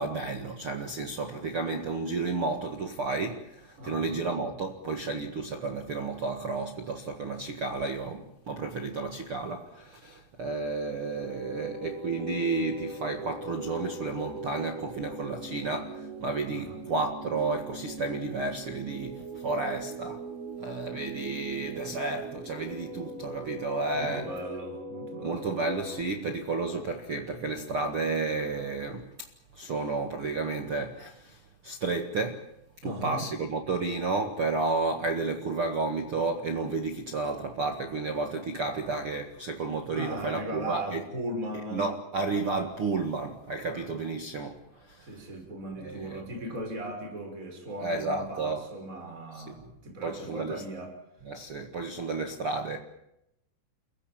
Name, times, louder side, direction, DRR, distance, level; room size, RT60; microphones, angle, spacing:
voice 1, 0.0-20.2 20.6-24.3 25.2-29.3 29.5-32.4 32.8-41.0 41.7-45.1 45.8-46.2 47.8-48.6 49.3-49.7 50.0-50.6 51.3-52.8, right 3 dB, 70° right, 1.3 m, -32 dB
voice 2, 3.8-4.2 16.5-16.8 23.9-25.6 32.8-33.2 39.9-41.8 43.7-43.9 45.0-50.9, right 1 dB, 15° right, 5.9 m, -38 dB
sound 1, 11.0-26.0, right 2 dB, 35° right, 1.2 m, -40 dB
29.5 x 15.5 x 9.1 m
omnidirectional pair, 5.5 m